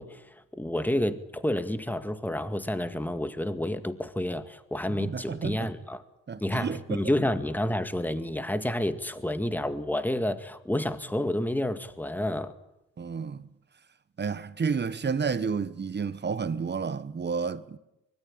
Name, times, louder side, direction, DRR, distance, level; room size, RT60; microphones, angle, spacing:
voice 1, 0.0-6.0 6.4-12.5, left 1 dB, 5° left, 2.0 m, -30 dB
voice 2, 5.0-5.6 6.3-7.0 13.0-13.4 14.2-17.8, right 5 dB, 35° right, 1.4 m, -30 dB
24.5 x 21.0 x 8.9 m
cardioid pair, 90°, 30 cm